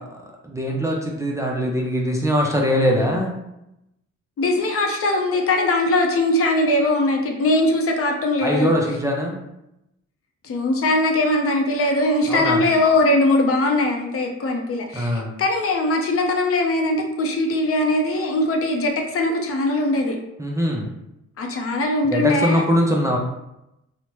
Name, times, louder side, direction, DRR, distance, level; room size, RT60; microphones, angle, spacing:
voice 1, 0.4-3.4 8.4-9.4 12.3-12.7 14.9-15.3 20.4-20.9 22.1-23.2, equal, 10° right, -1 dB, 0.4 m, -21 dB
voice 2, 4.4-8.7 10.4-20.2 21.4-22.6, left 2 dB, 50° left, 2 dB, 0.6 m, -21 dB
3.0 x 2.0 x 2.9 m, 0.87 s
cardioid pair, 90°, 30 cm